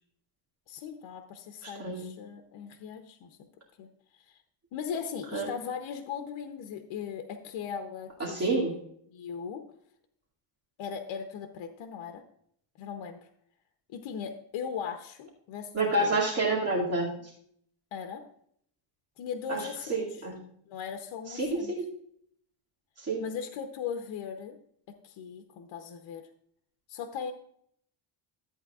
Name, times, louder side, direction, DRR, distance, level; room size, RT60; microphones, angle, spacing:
voice 1, 0.7-3.4 3.8-3.9 4.7-8.6 9.1-9.6 10.8-12.2 12.8-13.3 13.9-15.7 16.0-16.1 17.9-18.2 19.2-20.2 20.7-21.7 23.2-24.6 25.0-26.2 26.9-27.3, left 7 dB, 70° left, 7 dB, 0.9 m, -38 dB
voice 2, 1.6-2.0 5.3-5.5 8.2-8.7 15.7-17.1 19.5-20.3 21.3-21.8 23.0-23.2, right 2 dB, 30° right, -3 dB, 2.4 m, -29 dB
14.0 x 8.3 x 2.4 m, 0.67 s
cardioid pair, 145°, 48 cm